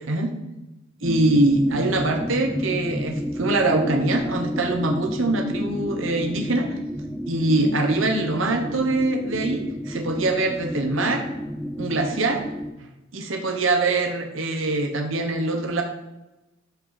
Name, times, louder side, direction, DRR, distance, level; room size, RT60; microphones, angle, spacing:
sound 1, 1.0-12.7, equal, ahead, 0.4 m, -31 dB
voice 1, 1.0-6.8 7.2-11.2 11.8-12.4 13.1-15.8, right 2 dB, 65° right, 4 dB, 1.2 m, -23 dB
12.5 x 6.1 x 4.1 m, 1.0 s
head